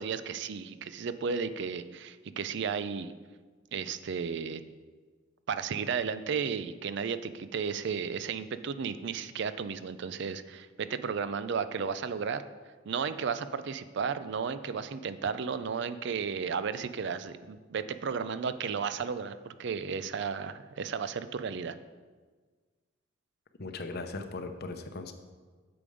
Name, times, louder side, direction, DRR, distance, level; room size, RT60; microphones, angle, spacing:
voice 1, 0.0-3.1 3.7-4.6 5.5-12.4 12.9-21.8, right 6 dB, 65° right, 12 dB, 0.4 m, -34 dB
voice 2, 23.6-25.1, left 3 dB, 55° left, 7 dB, 0.8 m, -38 dB
8.6 x 6.9 x 5.0 m, 1.4 s
head